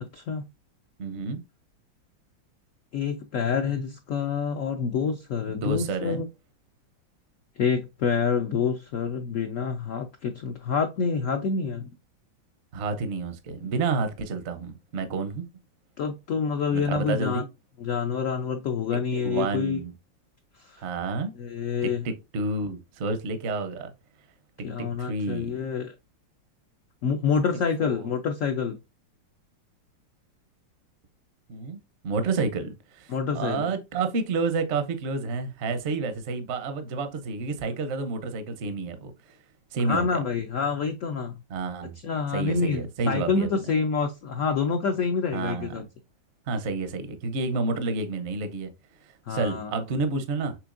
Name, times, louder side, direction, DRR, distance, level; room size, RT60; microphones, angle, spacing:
voice 1, 0.1-0.4 2.9-6.2 7.6-11.9 16.0-17.4 17.8-19.8 20.6-20.8 21.3-22.0 24.6-25.9 27.0-28.8 33.1-33.7 39.8-41.4 42.0-45.8 47.9-48.0 49.3-49.7, left 5 dB, 85° left, 0.6 m, -27 dB
voice 2, 1.0-1.4 5.6-6.2 12.7-15.5 16.7-17.5 19.1-19.9 20.8-21.3 21.8-23.9 24.8-25.5 27.8-28.1 31.5-31.8 32.0-39.4 39.7-40.2 41.5-42.0 42.3-43.5 45.3-45.8 46.5-48.7 49.0-50.6, right 3 dB, 55° right, 0.7 m, -30 dB
6.1 x 3.4 x 2.5 m
omnidirectional pair, 2.0 m